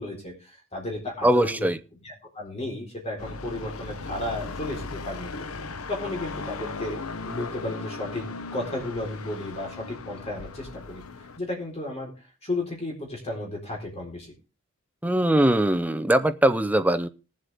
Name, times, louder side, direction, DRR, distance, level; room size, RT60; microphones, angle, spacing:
voice 1, 0.0-1.7 2.0-5.3 5.9-8.3 8.5-12.1 12.4-14.3, left 1 dB, 30° left, 4.1 m, -33 dB
voice 2, 1.2-1.8 15.0-17.1, right 1 dB, 5° right, 0.6 m, -21 dB
sound 1, 3.2-11.4, left 3 dB, 80° left, 0.9 m, -37 dB
19.5 x 7.6 x 3.5 m
head